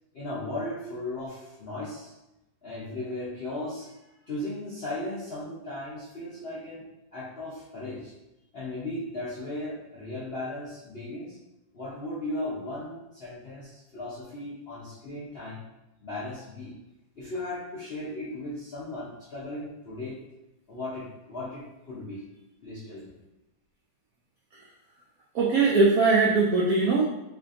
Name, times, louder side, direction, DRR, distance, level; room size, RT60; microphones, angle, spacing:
voice 1, 0.1-2.1 2.6-6.8 7.1-8.1 8.5-11.4 11.7-15.6 16.0-16.7 17.2-20.2 20.7-22.2 22.6-23.1, left 1 dB, 65° left, -9 dB, 0.6 m, -36 dB
voice 2, 25.3-27.0, right 3 dB, 85° right, -3 dB, 0.7 m, -21 dB
3.7 x 3.3 x 2.5 m, 0.92 s
omnidirectional pair, 2.1 m